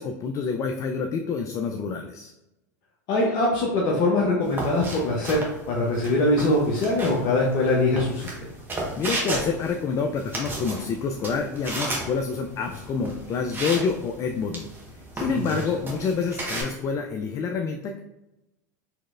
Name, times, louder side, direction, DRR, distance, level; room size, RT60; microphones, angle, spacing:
voice 1, 0.0-2.3 9.0-14.7 15.1-18.0, left 5 dB, 35° left, 5 dB, 0.4 m, -27 dB
voice 2, 3.1-5.4 5.7-8.5 15.3-15.4, left 2 dB, 50° left, -3 dB, 0.8 m, -22 dB
sound 1, 4.4-16.6, right 2 dB, 20° right, 1.2 m, -34 dB
4.4 x 3.0 x 2.4 m, 0.94 s
hypercardioid pair, 90°, 10 cm